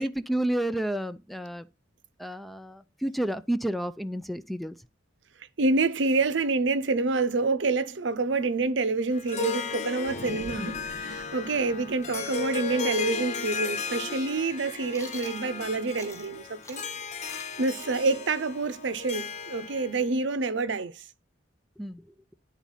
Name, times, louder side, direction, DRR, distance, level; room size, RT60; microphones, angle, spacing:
voice 1, 0.0-1.7 2.2-4.8 21.8-22.0, right 1 dB, ahead, 0.3 m, -30 dB
voice 2, 5.6-16.8 17.3-21.1, right 3 dB, 75° right, 0.7 m, -27 dB
Harp, 9.1-20.0, left 5 dB, 40° left, 0.6 m, -35 dB
sound 1, 10.0-14.8, left 1 dB, 55° left, 1.5 m, -43 dB
Chewing mastication, 14.9-16.3 16.6-20.2, left 3 dB, 15° left, 1.0 m, -48 dB
10.5 x 4.1 x 5.6 m
head